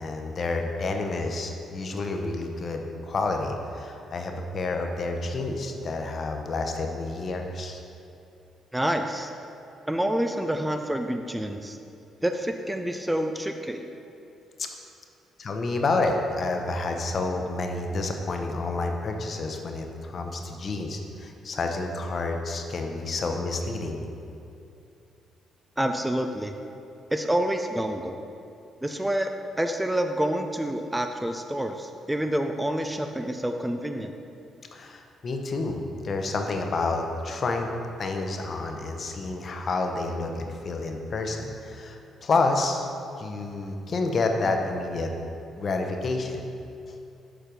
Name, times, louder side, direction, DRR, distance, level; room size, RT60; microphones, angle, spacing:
voice 1, 0.0-7.8 14.6-14.7 15.4-24.0 34.7-37.7 38.0-42.9 43.2-45.1 45.6-46.4, left 3 dB, 45° left, 4 dB, 0.7 m, -29 dB
voice 2, 8.7-9.3 9.9-11.8 12.2-13.9 25.8-26.5 27.1-28.2 28.8-29.3 29.6-34.1, right 1 dB, 10° right, 5 dB, 0.4 m, -28 dB
6.8 x 4.5 x 5.1 m, 2.6 s
cardioid pair, 90°, 0 cm